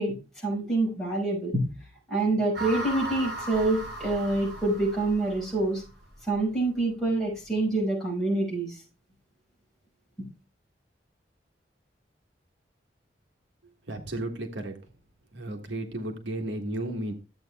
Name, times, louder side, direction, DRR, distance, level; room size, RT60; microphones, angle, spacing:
voice 1, 0.0-1.6 2.1-5.8 6.3-8.8, right 2 dB, ahead, -5 dB, 5.7 m, -26 dB
sound 1, 2.5-5.8, right 2 dB, 55° right, 5.7 m, -37 dB
voice 2, 13.9-14.8 15.3-17.1, right 1 dB, 85° right, 5 dB, 1.4 m, -33 dB
13.5 x 8.0 x 2.3 m, 0.31 s
head